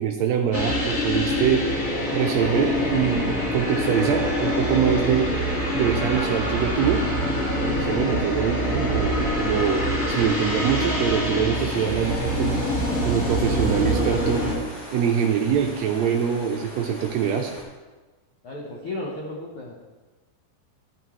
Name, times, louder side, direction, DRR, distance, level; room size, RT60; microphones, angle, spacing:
voice 1, 0.0-1.7 2.1-5.3 5.7-7.0 7.6-12.6 13.0-14.4 14.9-17.5, right 8 dB, 85° right, 3 dB, 1.5 m, -24 dB
sound 1, 0.5-14.5, equal, 30° left, 1.7 m, -25 dB
sound 2, 11.5-17.6, left 1 dB, 10° left, 1.2 m, -40 dB
voice 2, 18.4-19.8, left 2 dB, 65° left, -3 dB, 1.4 m, -34 dB
12.5 x 9.9 x 3.1 m, 1.2 s
omnidirectional pair, 3.9 m